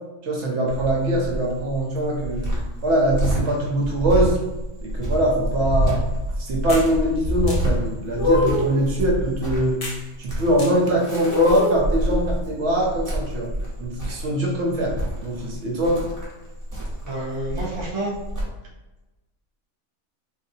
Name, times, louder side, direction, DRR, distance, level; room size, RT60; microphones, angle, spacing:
voice 1, 0.2-2.5 2.8-4.4 4.8-6.0 6.4-9.8 10.2-13.5 13.8-14.9 15.2-16.0, right 1 dB, 60° right, -2 dB, 1.0 m, -22 dB
Cricket, 0.7-18.4, right 1 dB, 15° right, 0.9 m, -28 dB
sound 1, 6.7-6.9 7.5-7.6 8.2-8.7 9.8-10.0 10.6-10.7 11.3-11.9, left 3 dB, 35° left, 0.7 m, -22 dB
voice 2, 17.1-18.1, right 2 dB, 35° right, -4 dB, 0.5 m, -29 dB
3.8 x 2.6 x 2.7 m, 1.1 s
omnidirectional pair, 1.5 m